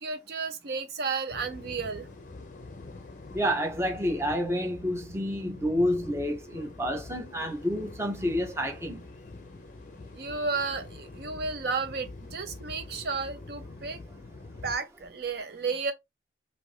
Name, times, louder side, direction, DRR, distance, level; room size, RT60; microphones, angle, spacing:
voice 1, 0.0-2.1 10.1-14.0 14.6-15.9, right 4 dB, 60° right, 0.5 m, -32 dB
sound 1, 1.3-14.8, left 3 dB, 45° left, 0.5 m, -45 dB
voice 2, 3.3-9.0, equal, 15° right, 0.6 m, -29 dB
2.5 x 2.5 x 3.2 m
head